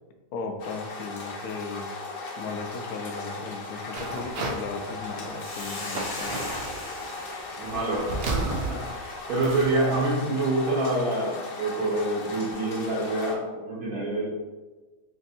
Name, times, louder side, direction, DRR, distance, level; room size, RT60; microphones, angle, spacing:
voice 1, 0.3-1.9 2.4-6.4, left 4 dB, 70° left, 5 dB, 1.0 m, -36 dB
sound 1, 0.6-13.3, left 3 dB, 85° left, 1.4 m, -38 dB
sound 2, 3.9-4.6 5.0-5.5 5.9-6.8 7.6-10.0, right 3 dB, 90° right, 0.5 m, -32 dB
Hiss, 5.4-9.9, left 2 dB, 45° left, 0.9 m, -40 dB
voice 2, 7.6-14.2, right 2 dB, 65° right, -7 dB, 1.2 m, -27 dB
3.5 x 2.6 x 4.0 m, 1.2 s
omnidirectional pair, 1.7 m